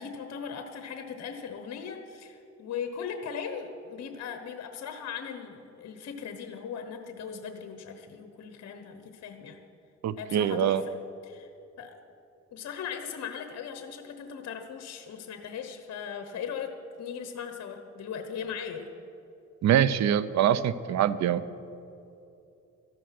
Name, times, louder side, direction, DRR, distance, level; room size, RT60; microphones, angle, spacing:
voice 1, 0.0-9.6 10.2-10.9 11.2-11.5 11.8-12.0 12.5-16.7 17.0-18.9, left 7 dB, 60° left, 6 dB, 1.1 m, -38 dB
voice 2, 10.0-10.8 19.6-21.4, right 10 dB, 65° right, 16 dB, 0.6 m, -24 dB
14.0 x 11.5 x 6.0 m, 2.8 s
cardioid pair, 90°, 30 cm